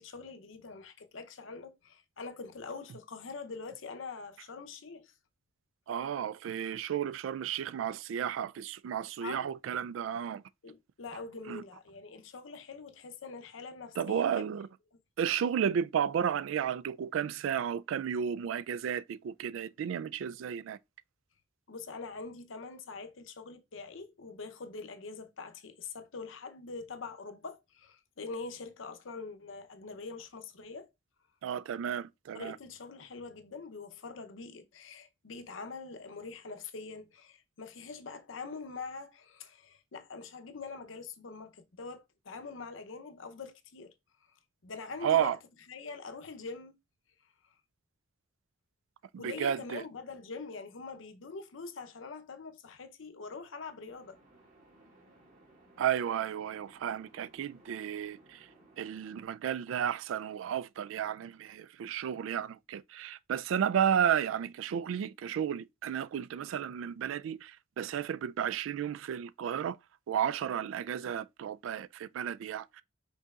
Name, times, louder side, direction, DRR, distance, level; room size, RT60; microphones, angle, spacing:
voice 1, 0.0-5.1 9.2-9.5 10.6-14.4 21.7-30.9 32.3-43.9 44.6-45.4 45.7-46.7 49.2-54.2, left 4 dB, 85° left, 0.7 m, -44 dB
voice 2, 5.9-10.4 11.5-11.6 14.0-14.7 15.2-20.8 31.4-32.6 45.0-45.4 49.1-49.8 55.8-58.5 58.8-69.8 70.1-72.8, right 8 dB, 85° right, 0.3 m, -33 dB
sound 1, 53.9-59.3, right 1 dB, 45° right, 2.0 m, -61 dB
5.3 x 3.9 x 2.4 m
head